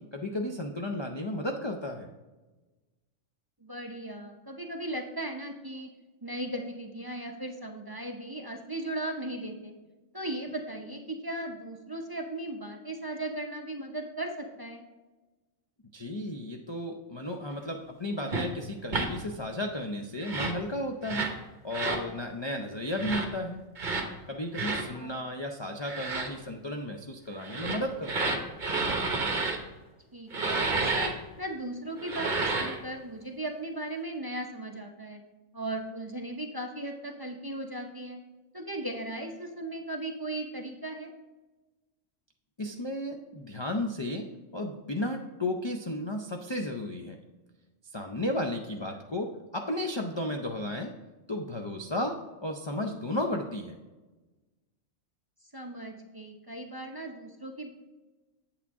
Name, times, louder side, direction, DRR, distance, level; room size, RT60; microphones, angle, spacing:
voice 1, 0.0-2.1 15.9-21.4 21.6-23.6 24.3-28.4 42.6-47.2 47.9-51.0 51.3-53.8, left 1 dB, 45° left, 2 dB, 0.3 m, -34 dB
voice 2, 3.6-5.9 6.2-9.7 10.1-14.8 24.9-25.1 30.1-31.1 31.4-35.2 35.5-38.2 38.5-41.1 55.5-57.7, right 1 dB, 25° right, 2 dB, 0.6 m, -37 dB
sound 1, 18.3-18.5 18.9-19.1 20.2-20.6 21.0-21.4 21.7-22.0 22.9-23.3 23.8-24.1 24.5-24.8 25.8-26.3 27.4-29.6 30.3-31.1 32.0-32.8, right 3 dB, 40° right, 1.1 m, -30 dB
8.4 x 7.9 x 3.6 m, 1.2 s
omnidirectional pair, 1.4 m